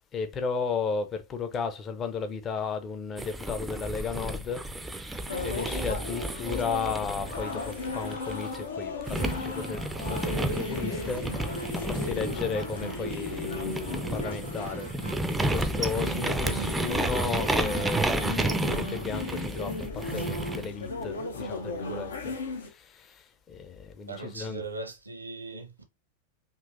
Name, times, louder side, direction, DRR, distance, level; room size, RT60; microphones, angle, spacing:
voice 1, 0.1-14.9 15.3-24.6, left 5 dB, 25° left, 0.7 m, -34 dB
sound 1, 3.2-8.6 9.1-20.7, right 2 dB, 10° right, 0.5 m, -32 dB
sound 2, 5.3-22.7, left 2 dB, 70° left, 0.8 m, -36 dB
voice 2, 24.1-25.8, right 3 dB, 80° right, 0.9 m, -39 dB
5.3 x 2.8 x 2.6 m
figure-of-eight pair, 90°, 0 cm